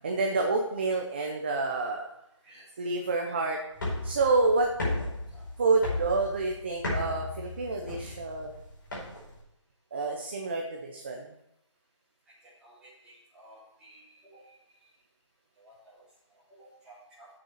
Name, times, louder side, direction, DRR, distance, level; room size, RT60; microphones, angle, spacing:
voice 1, 0.0-2.1 2.8-3.6 4.0-4.7 5.6-8.5 9.9-11.3, right 3 dB, 20° right, 2 dB, 0.7 m, -28 dB
voice 2, 2.4-2.8 5.3-5.4 8.3-8.4 12.2-14.9 15.5-17.3, right 1 dB, 5° right, -11 dB, 3.0 m, -56 dB
sound 1, 3.7-9.4, left 2 dB, 40° left, 4.8 m, -35 dB
8.2 x 7.2 x 6.4 m, 0.81 s
figure-of-eight pair, 170°, 16 cm